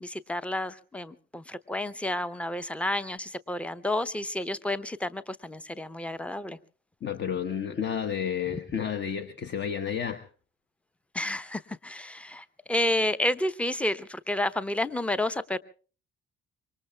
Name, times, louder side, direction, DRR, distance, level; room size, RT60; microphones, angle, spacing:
voice 1, 0.0-6.6 11.1-15.6, left 1 dB, 5° left, 14 dB, 0.7 m, -30 dB
voice 2, 7.0-10.2, left 8 dB, 35° left, 9 dB, 1.0 m, -31 dB
26.0 x 24.0 x 2.3 m, 0.39 s
figure-of-eight pair, 50°, 30 cm